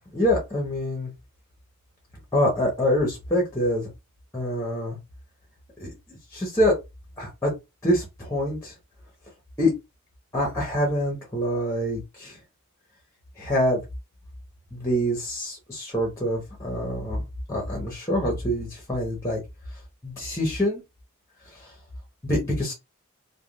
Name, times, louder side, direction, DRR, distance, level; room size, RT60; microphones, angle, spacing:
voice 1, 0.1-1.1 2.3-3.9 4.3-5.0 5.8-6.8 7.2-7.5 7.8-8.7 9.6-9.7 10.3-12.4 13.4-13.8 14.7-17.2 17.5-19.4 20.0-20.8 21.5-21.7 22.2-22.7, equal, 10° left, -1 dB, 0.9 m, -25 dB
3.5 x 2.3 x 2.3 m, 0.23 s
head